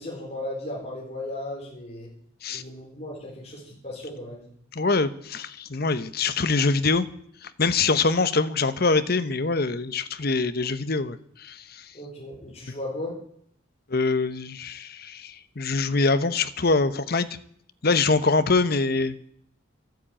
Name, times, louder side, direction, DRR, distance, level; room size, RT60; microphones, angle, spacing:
voice 1, 0.0-2.1 2.5-4.4 11.9-13.1, left 1 dB, 30° left, -3 dB, 4.1 m, -36 dB
voice 2, 4.7-7.1 7.4-11.9 13.9-17.3 17.8-19.3, left 3 dB, 50° left, 13 dB, 0.9 m, -24 dB
13.0 x 9.1 x 8.9 m, 0.66 s
head